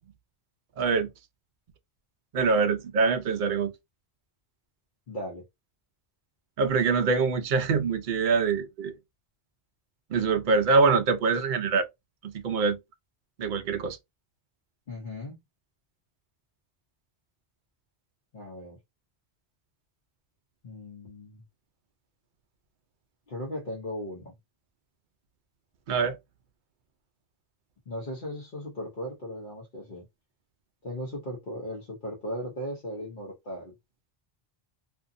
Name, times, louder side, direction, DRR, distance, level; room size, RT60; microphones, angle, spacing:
voice 1, 0.8-1.1 2.3-3.7 6.6-8.9 10.1-11.9 12.2-12.8 13.4-14.0 25.9-26.2, right 4 dB, 60° right, 0.6 m, -24 dB
voice 2, 5.1-5.4 14.9-15.4 18.3-18.8 20.6-21.4 23.3-24.3 27.9-30.1 30.8-33.7, equal, 55° left, 1.0 m, -37 dB
2.6 x 2.4 x 2.5 m
omnidirectional pair, 1.1 m